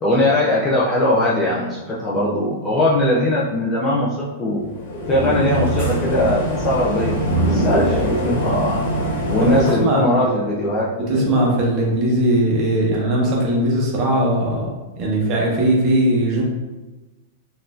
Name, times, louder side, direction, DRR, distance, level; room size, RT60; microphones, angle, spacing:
voice 1, 0.0-4.6 5.1-8.8 9.3-11.4, left 1 dB, 15° left, -6 dB, 0.4 m, -20 dB
sound 1, 4.7-9.7, right 1 dB, 70° left, 1.4 m, -22 dB
voice 2, 7.8-8.3 9.4-10.3 11.0-14.7 14.9-16.4, right 1 dB, 30° right, -3 dB, 0.8 m, -19 dB
4.0 x 2.6 x 2.3 m, 1.1 s
supercardioid pair, 165°, 0 cm